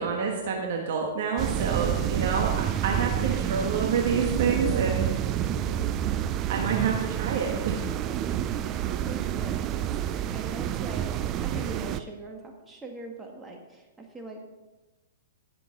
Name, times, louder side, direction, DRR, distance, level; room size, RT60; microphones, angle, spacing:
voice 1, 0.0-5.1 6.5-7.9, right 5 dB, 60° right, 1 dB, 1.5 m, -28 dB
sound 1, 1.4-12.0, right 11 dB, 30° right, 0.5 m, -29 dB
voice 2, 1.6-2.2 4.4-6.0 8.0-11.1 11.4-14.4, right 2 dB, 10° right, 1 dB, 1.7 m, -42 dB
16.0 x 6.9 x 3.9 m, 1.1 s
hypercardioid pair, 130°, 0 cm